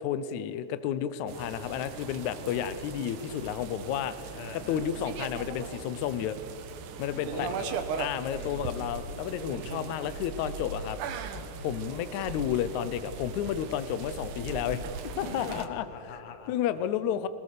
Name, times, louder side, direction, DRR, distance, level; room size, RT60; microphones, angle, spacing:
voice 1, 0.0-6.4 7.0-7.5 8.0-11.0 11.6-14.8 15.2-15.9 16.5-17.3, left 10 dB, 75° left, 13 dB, 2.0 m, -31 dB
sound 1, 1.3-15.7, right 5 dB, 75° right, 2.6 m, -39 dB
voice 2, 4.3-4.9 7.1-7.9 8.3-8.8 15.3-16.6, left 6 dB, 90° left, 7 dB, 3.2 m, -42 dB
23.0 x 21.0 x 6.7 m, 2.6 s
omnidirectional pair, 3.8 m